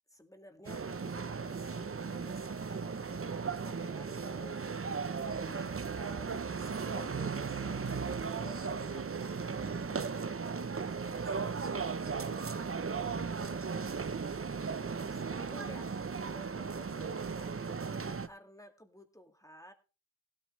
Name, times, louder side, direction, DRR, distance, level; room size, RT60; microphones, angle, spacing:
voice 1, 0.1-4.6 5.3-5.7 6.0-7.9 8.3-11.6 15.1-19.7, equal, 5° left, 5 dB, 2.1 m, -54 dB
sound 1, 0.6-18.3, right 5 dB, 30° right, 0.8 m, -36 dB
voice 2, 12.0-12.1, right 6 dB, 75° right, 1 dB, 1.9 m, -55 dB
16.0 x 9.7 x 3.2 m, 0.32 s
cardioid pair, 50°, 48 cm